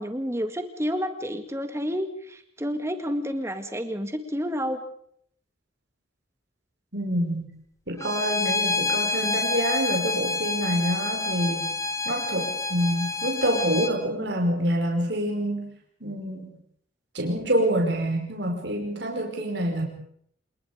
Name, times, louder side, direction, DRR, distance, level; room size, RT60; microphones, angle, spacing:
voice 1, 0.0-4.8, equal, 15° right, 8 dB, 2.1 m, -30 dB
voice 2, 6.9-7.4 7.9-11.8 12.0-15.6 16.0-16.6 17.1-19.8, right 1 dB, 60° right, 1 dB, 5.0 m, -26 dB
Bowed string instrument, 8.0-13.9, left 3 dB, 15° left, 1.7 m, -28 dB
27.5 x 20.0 x 5.2 m, 0.66 s
head